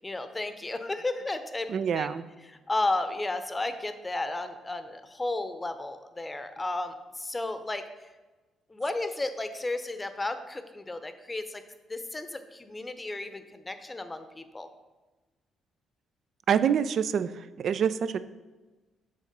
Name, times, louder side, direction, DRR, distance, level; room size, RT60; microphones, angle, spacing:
voice 1, 0.0-2.1 2.7-7.8 8.7-11.6 11.9-14.7, left 2 dB, 20° left, 9 dB, 0.7 m, -33 dB
voice 2, 1.7-2.2 16.5-18.2, right 8 dB, 60° right, 13 dB, 0.3 m, -26 dB
6.4 x 3.7 x 5.2 m, 1.2 s
hypercardioid pair, 55°, 0 cm